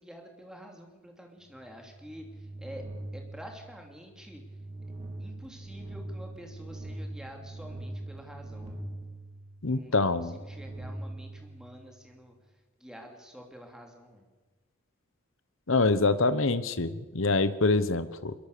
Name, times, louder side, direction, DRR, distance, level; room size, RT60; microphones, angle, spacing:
voice 1, 0.0-2.8 3.1-4.4 5.2-9.0 9.7-12.5 12.8-14.3, equal, 5° right, 2 dB, 3.1 m, -48 dB
sound 1, 1.5-12.2, right 1 dB, 30° right, 3.2 m, -42 dB
voice 2, 9.6-10.3 15.7-18.3, left 3 dB, 70° left, 13 dB, 1.1 m, -25 dB
22.5 x 22.0 x 6.8 m, 1.3 s
head